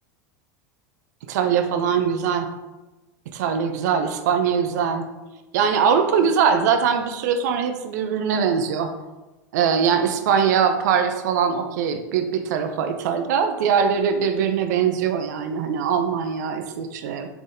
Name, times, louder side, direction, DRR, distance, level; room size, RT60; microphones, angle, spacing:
voice 1, 1.3-2.5 3.3-5.1 5.5-8.9 9.5-17.3, right 7 dB, 70° right, 7 dB, 0.4 m, -22 dB
3.4 x 3.4 x 2.6 m, 1.1 s
hypercardioid pair, 95°, 10 cm